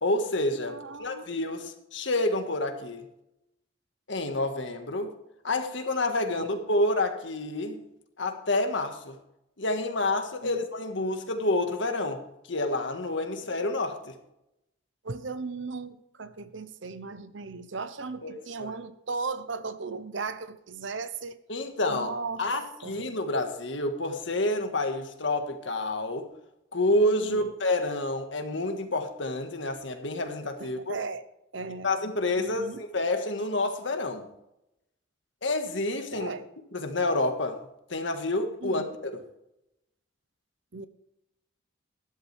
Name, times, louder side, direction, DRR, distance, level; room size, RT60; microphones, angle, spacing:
voice 1, 0.0-3.0 4.1-5.1 5.4-7.8 8.2-9.1 9.6-12.2 12.5-14.1 18.2-18.7 21.5-22.1 22.4-26.3 26.7-30.9 31.8-34.3 35.4-36.3 36.7-37.6 37.9-39.2, left 2 dB, 70° left, 1.6 m, -28 dB
voice 2, 0.6-1.2 6.4-6.5 10.4-10.6 15.0-21.4 21.9-22.5 22.8-23.0 27.2-27.5 30.6-31.2 31.5-31.9 32.4-32.8 36.1-36.5 38.6-38.9 40.7-40.9, right 4 dB, 75° right, 0.9 m, -37 dB
12.5 x 11.5 x 3.4 m
head